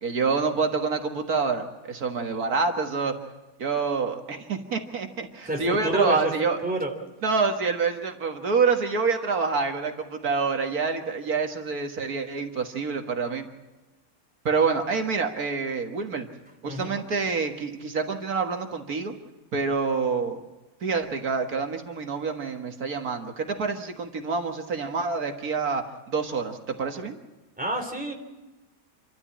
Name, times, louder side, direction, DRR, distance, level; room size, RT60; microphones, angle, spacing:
voice 1, 0.0-3.1 3.6-6.6 7.2-13.5 14.5-16.3 16.6-19.1 19.5-20.4 20.8-27.2, right 4 dB, 70° right, 5 dB, 2.0 m, -27 dB
voice 2, 5.5-6.3 6.6-6.9 16.7-16.9 27.6-28.1, right 1 dB, 5° right, 1 dB, 3.4 m, -28 dB
27.0 x 13.5 x 8.6 m, 1.1 s
omnidirectional pair, 1.6 m